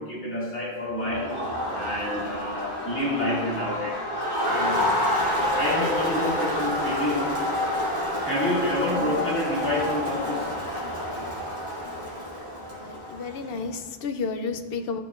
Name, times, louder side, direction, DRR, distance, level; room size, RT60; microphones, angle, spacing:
voice 1, 0.0-1.3 1.7-4.0 4.5-4.8 5.4-7.4 8.2-10.5, left 1 dB, 10° left, -7 dB, 1.9 m, -28 dB
Crowd, 1.0-13.5, left 1 dB, 30° right, 2.8 m, -28 dB
voice 2, 12.7-15.0, left 4 dB, 65° left, 7 dB, 0.8 m, -32 dB
13.5 x 6.8 x 2.4 m, 1.4 s
omnidirectional pair, 1.1 m